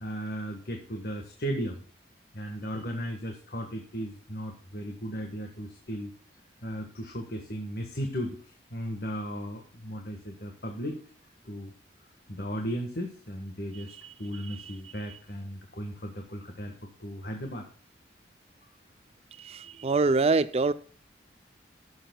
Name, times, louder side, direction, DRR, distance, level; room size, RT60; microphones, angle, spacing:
voice 1, 0.0-1.8 2.3-6.1 6.6-11.0 11.4-11.7 12.3-13.9 14.2-16.7 17.0-17.6, equal, 55° left, 2 dB, 1.5 m, -36 dB
voice 2, 19.4-20.7, right 3 dB, 35° right, 15 dB, 0.4 m, -24 dB
16.0 x 7.1 x 2.2 m, 0.41 s
head